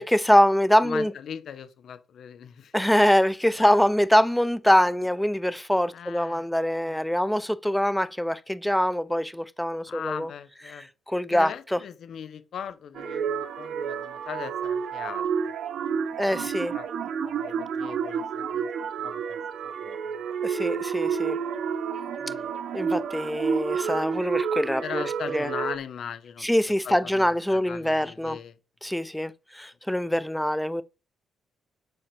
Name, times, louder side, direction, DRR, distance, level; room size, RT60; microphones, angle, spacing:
voice 1, 0.0-1.1 2.7-10.3 11.1-11.8 16.2-16.8 20.4-21.4 22.7-25.0 25.3-25.5 26.4-28.4 28.8-30.8, equal, 5° left, 0.8 m, -24 dB
voice 2, 0.8-2.7 5.9-6.4 6.8-7.0 9.9-10.9 11.3-15.6 16.3-16.9 17.2-18.7 19.0-19.4 19.8-20.2 22.2-22.5 24.8-26.5 26.8-28.6, left 8 dB, 65° left, 1.3 m, -39 dB
sound 1, 12.9-25.8, right 6 dB, 65° right, 1.1 m, -30 dB
9.6 x 4.2 x 7.0 m
cardioid pair, 90°, 0 cm